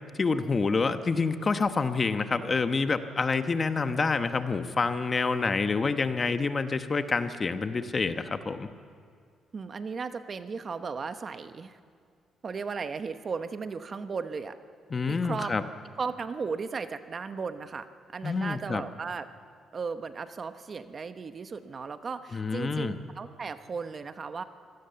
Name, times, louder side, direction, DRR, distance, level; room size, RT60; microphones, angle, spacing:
voice 1, 0.2-8.7 14.9-15.6 18.2-18.8 22.3-23.0, left 4 dB, 35° left, 9 dB, 1.1 m, -27 dB
voice 2, 9.5-11.8 12.4-14.6 15.1-15.5 16.0-17.9 18.1-19.3 19.7-24.4, right 5 dB, 40° right, 10 dB, 1.0 m, -36 dB
24.5 x 17.5 x 6.9 m, 2.2 s
cardioid pair, 90°, 0 cm